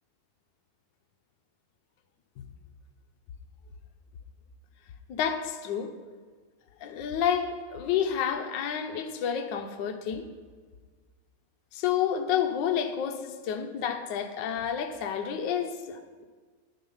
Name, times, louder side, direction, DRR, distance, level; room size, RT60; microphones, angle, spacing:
voice 1, 5.1-5.9 6.8-10.2 11.7-16.3, left 8 dB, 65° left, 6 dB, 1.4 m, -30 dB
10.5 x 7.9 x 5.5 m, 1.5 s
omnidirectional pair, 2.4 m